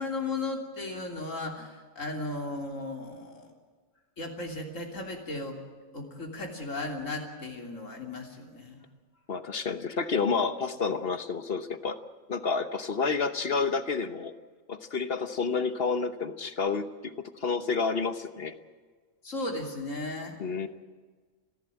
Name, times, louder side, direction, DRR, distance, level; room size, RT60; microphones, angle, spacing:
voice 1, 0.0-3.5 4.2-5.6 5.9-8.8 19.2-20.4, left 2 dB, 70° left, 2 dB, 3.6 m, -36 dB
voice 2, 9.3-12.0 12.3-14.3 14.7-18.5 20.4-20.7, left 5 dB, 50° left, 10 dB, 1.3 m, -29 dB
30.0 x 11.5 x 8.9 m, 1.4 s
omnidirectional pair, 1.4 m